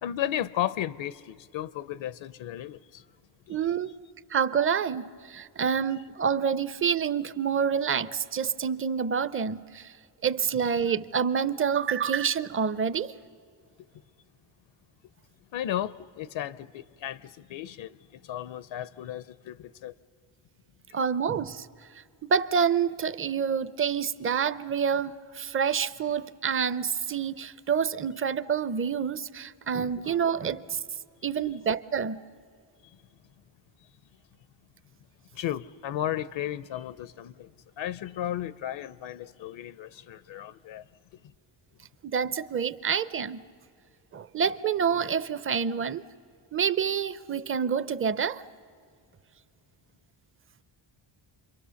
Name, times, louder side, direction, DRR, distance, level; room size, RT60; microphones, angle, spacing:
voice 1, 0.0-3.1 3.5-3.6 15.5-19.9 30.1-30.2 31.4-31.5 35.3-40.8, left 11 dB, 70° left, 0.6 m, -34 dB
voice 2, 3.5-3.9 4.3-9.9 10.2-13.1 20.9-21.7 22.2-30.8 31.2-32.2 42.0-43.4 44.1-46.0 46.5-48.4, right 7 dB, 30° right, 0.5 m, -27 dB
28.5 x 23.0 x 7.0 m
cardioid pair, 130°, 47 cm